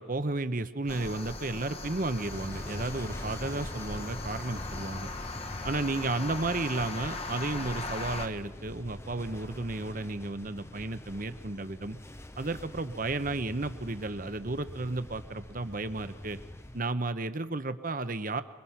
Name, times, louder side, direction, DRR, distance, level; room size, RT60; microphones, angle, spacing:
voice 1, 0.0-5.1 5.6-12.0 12.4-16.4 16.7-18.4, right 2 dB, 40° right, 11 dB, 0.9 m, -33 dB
sound 1, 0.9-8.3, left 2 dB, 30° left, 1.2 m, -39 dB
sound 2, 2.2-16.8, left 1 dB, 15° left, 0.7 m, -45 dB
24.0 x 23.0 x 5.8 m, 1.2 s
head